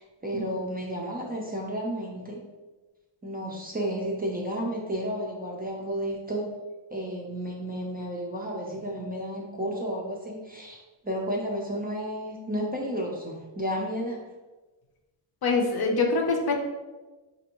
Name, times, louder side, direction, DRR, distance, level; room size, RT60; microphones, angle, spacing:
voice 1, 0.0-2.4 3.2-6.5 6.9-14.2, equal, 20° right, -2 dB, 0.4 m, -32 dB
voice 2, 15.4-16.5, left 3 dB, 50° left, 2 dB, 0.6 m, -24 dB
5.0 x 2.6 x 2.9 m, 1.2 s
wide cardioid pair, 155°, 49 cm